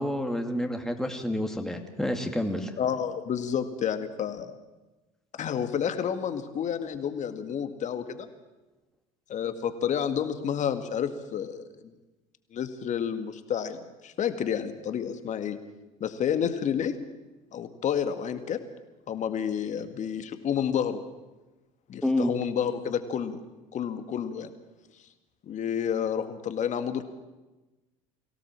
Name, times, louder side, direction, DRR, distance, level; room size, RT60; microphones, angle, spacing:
voice 1, 0.0-2.7 22.0-22.3, left 1 dB, 5° left, 4 dB, 2.4 m, -28 dB
voice 2, 2.8-4.6 5.4-8.3 9.3-11.9 12.5-15.6 16.0-16.9 17.5-18.6 19.1-21.0 21.9-23.4 23.7-24.5 25.4-27.0, left 8 dB, 45° left, 9 dB, 2.0 m, -30 dB
23.5 x 17.0 x 7.5 m, 1.1 s
hypercardioid pair, 70°, 18 cm